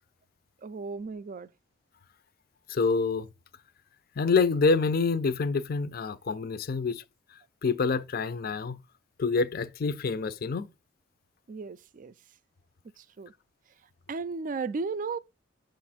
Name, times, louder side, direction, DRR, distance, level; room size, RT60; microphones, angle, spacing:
voice 1, 0.6-1.5 11.5-12.1 13.0-13.3 14.1-15.2, right 4 dB, 45° right, 0.4 m, -35 dB
voice 2, 2.7-3.3 4.2-7.0 7.6-8.8 9.2-10.7, left 4 dB, 55° left, 0.5 m, -27 dB
6.8 x 2.5 x 5.6 m
head